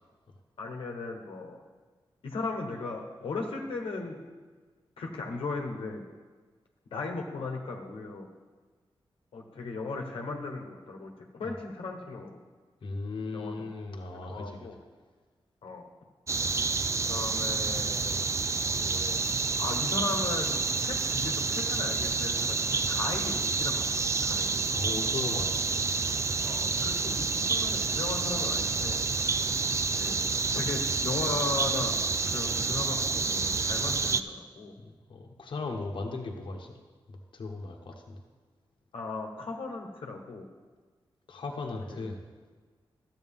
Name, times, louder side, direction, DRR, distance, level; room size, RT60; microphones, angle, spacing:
voice 1, 0.6-1.6 2.2-4.2 5.0-6.0 6.9-8.3 9.3-12.4 13.3-13.7 14.3-14.8 15.6-15.9 17.1-18.3 18.8-19.2 19.6-23.8 24.2-24.5 24.8-24.9 26.4-29.0 30.0-30.1 30.5-31.9 32.2-34.7 38.9-40.5 41.9-42.0, left 3 dB, 90° left, 2 dB, 1.1 m, -37 dB
voice 2, 12.8-14.7 24.7-25.8 34.8-36.8 37.3-38.2 41.3-42.2, left 3 dB, 65° left, 2 dB, 1.0 m, -37 dB
sound 1, 16.3-34.2, right 4 dB, 35° right, 0.4 m, -29 dB
12.5 x 7.8 x 3.6 m, 1.4 s
wide cardioid pair, 95°, 9 cm